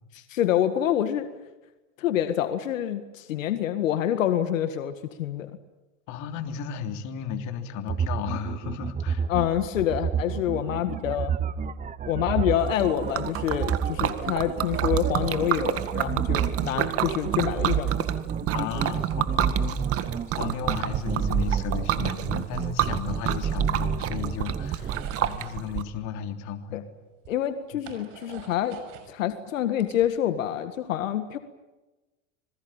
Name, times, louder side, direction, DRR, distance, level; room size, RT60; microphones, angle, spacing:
voice 1, 0.1-1.3 2.0-5.5 9.3-11.3 12.0-17.9 26.7-26.8 27.3-28.8 29.1-31.4, left 11 dB, 85° left, 9 dB, 1.9 m, -27 dB
voice 2, 6.1-9.3 10.6-10.7 12.2-12.5 18.5-26.8 27.7-27.8, left 8 dB, 50° left, 6 dB, 3.3 m, -35 dB
sound 1, 7.9-25.1, right 8 dB, 20° right, 1.0 m, -29 dB
Liquid, 12.6-25.8, right 11 dB, 35° right, 1.9 m, -30 dB
sound 2, 24.8-25.6 26.7-26.8 27.2-29.1 29.5-30.6, right 8 dB, 55° right, 6.1 m, -46 dB
26.5 x 21.5 x 8.9 m, 1.1 s
supercardioid pair, 120°, 38 cm